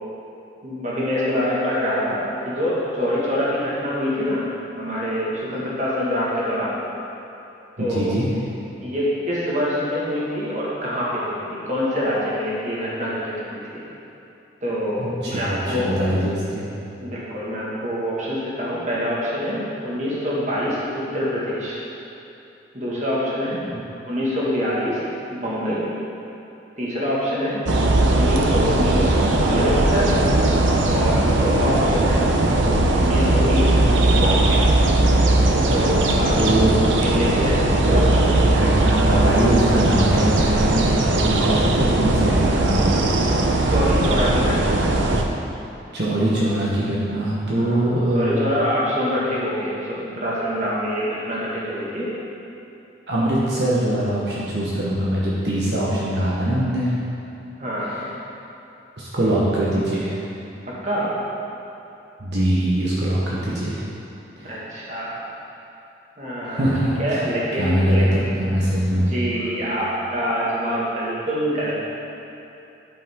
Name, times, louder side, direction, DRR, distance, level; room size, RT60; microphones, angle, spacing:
voice 1, 0.6-4.5 4.8-6.8 7.8-8.2 8.8-13.8 14.6-15.9 17.0-21.8 22.7-23.6 24.1-25.9 26.8-27.7 28.1-30.2 30.9-32.3 32.9-34.6 35.7-36.4 37.0-38.4 43.7-44.8 47.6-47.9 48.1-52.1 57.6-58.0 60.8-61.1 64.4-65.2 66.2-66.6 67.0-68.1 68.9-71.7, equal, 40° right, -7 dB, 1.8 m, -25 dB
voice 2, 7.8-8.3 15.0-16.7 36.3-36.7 37.9-38.0 38.3-43.1 43.6-43.7 45.9-48.5 53.1-56.9 59.0-60.2 62.2-63.8 64.4-64.6 66.4-67.2 67.6-69.1, right 1 dB, 70° right, -7 dB, 1.2 m, -22 dB
sound 1, 27.7-45.2, right 2 dB, 90° right, 0.7 m, -18 dB
11.0 x 5.4 x 3.7 m, 2.9 s
head